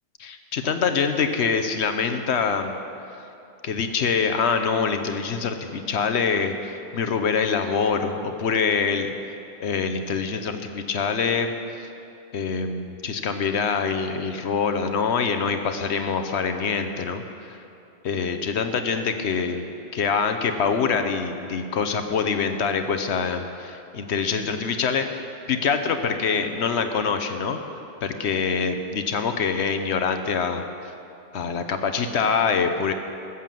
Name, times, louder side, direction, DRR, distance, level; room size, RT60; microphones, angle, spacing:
voice 1, 0.2-2.8 3.6-9.1 9.6-11.5 12.3-17.2 18.0-19.7 19.9-25.2 25.5-27.6 28.0-30.6 31.3-32.9, left 5 dB, 80° left, 7 dB, 1.1 m, -25 dB
14.5 x 7.1 x 7.7 m, 2.8 s
omnidirectional pair, 1.1 m